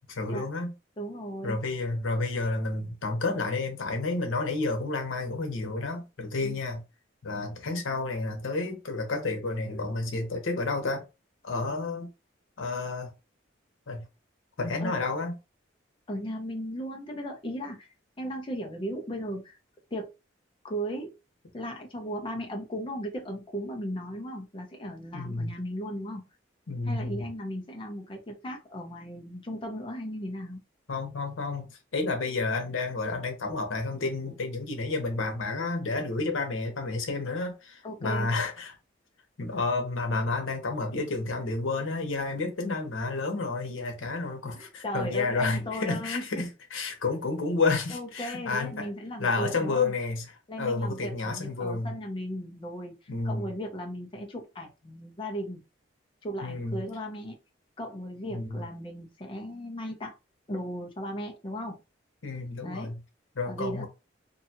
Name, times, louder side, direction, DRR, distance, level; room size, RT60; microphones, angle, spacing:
voice 1, 0.1-0.7 1.4-6.8 7.2-11.0 11.4-12.1 12.6-13.1 13.9-14.0 14.6-15.3 25.1-25.5 26.7-27.3 30.9-38.7 39.4-48.9 49.2-50.2 50.6-51.9 53.1-53.5 56.4-56.8 58.3-58.6 62.2-63.0 63.3-63.9, left 3 dB, 90° left, 0.8 m, -30 dB
voice 2, 1.0-1.6 6.4-6.6 14.8-15.0 16.1-17.9 18.2-19.6 19.9-20.1 20.6-21.1 21.5-26.2 26.8-30.6 37.8-38.3 44.5-46.5 47.9-49.9 50.5-55.6 56.2-57.4 57.8-60.1 60.5-61.8 62.6-62.9 63.4-63.9, equal, 25° left, 0.5 m, -36 dB
2.7 x 2.2 x 2.7 m
head